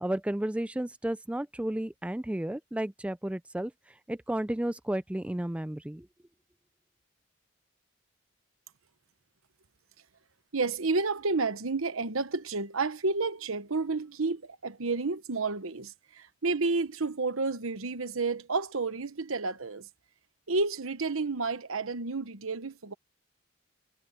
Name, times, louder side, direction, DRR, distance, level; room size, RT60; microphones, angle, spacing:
voice 1, 0.0-3.7 4.1-6.1, right 1 dB, 5° right, 0.3 m, -32 dB
voice 2, 10.5-19.9 20.5-22.9, right 3 dB, 75° right, 1.1 m, -30 dB
head